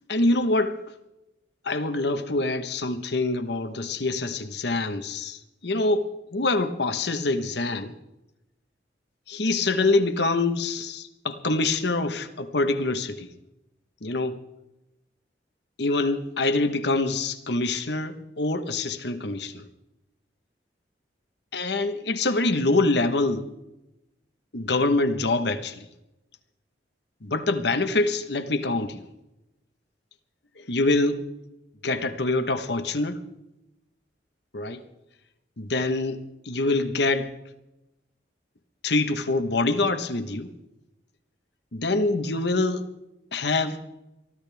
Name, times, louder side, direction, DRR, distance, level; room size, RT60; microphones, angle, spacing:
voice 1, 0.1-0.8 1.6-7.9 9.3-13.3 14.0-14.4 15.8-19.6 21.5-23.5 24.5-25.9 27.2-29.0 30.6-31.2 31.8-33.2 34.5-34.8 35.6-37.3 38.8-40.5 41.7-42.9 43.3-43.8, left 2 dB, 65° left, 1.3 m, -25 dB
23.5 x 14.5 x 3.5 m
head